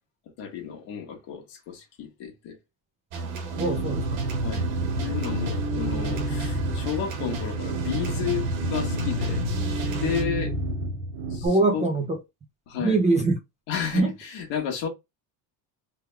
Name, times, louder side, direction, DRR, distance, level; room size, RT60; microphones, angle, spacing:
voice 1, 0.4-2.6 4.4-4.7 5.0-9.4 9.7-10.5 11.3-11.5 11.7-11.9 12.7-13.0 13.7-14.9, left 8 dB, 60° left, 1.3 m, -32 dB
sound 1, 3.1-10.2, right 4 dB, 75° right, 1.3 m, -35 dB
sound 2, 3.5-11.5, right 1 dB, 50° right, 1.4 m, -29 dB
voice 2, 3.6-4.3 11.4-12.2 12.8-13.4 13.9-14.1, right 3 dB, 15° right, 0.4 m, -23 dB
3.4 x 2.2 x 3.2 m
cardioid pair, 165°, 48 cm